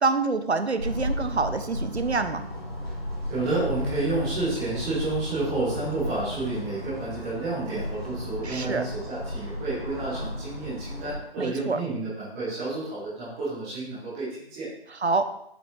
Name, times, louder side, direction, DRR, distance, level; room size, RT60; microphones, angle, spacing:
voice 1, 0.0-2.5 8.4-8.8 11.4-11.8 14.9-15.3, right 4 dB, 90° right, 9 dB, 0.9 m, -26 dB
sound 1, 0.8-11.2, left 1 dB, 70° left, 2.8 m, -34 dB
voice 2, 3.3-14.7, right 2 dB, 5° right, -10 dB, 0.8 m, -30 dB
7.5 x 5.2 x 3.1 m, 0.75 s
figure-of-eight pair, 160°, 32 cm